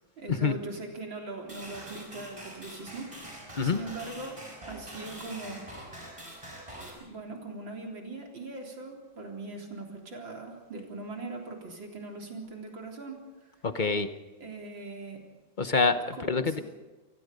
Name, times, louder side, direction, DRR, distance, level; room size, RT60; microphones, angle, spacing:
voice 1, 0.2-4.4 4.7-5.7 6.8-13.2 14.4-15.2 16.1-16.6, right 3 dB, 70° right, 1 dB, 4.3 m, -41 dB
sound 1, 1.5-6.9, right 1 dB, 15° right, 6.0 m, -44 dB
voice 2, 13.6-14.1 15.6-16.6, left 4 dB, 35° left, 9 dB, 0.7 m, -26 dB
28.0 x 19.5 x 5.3 m, 1.2 s
omnidirectional pair, 2.1 m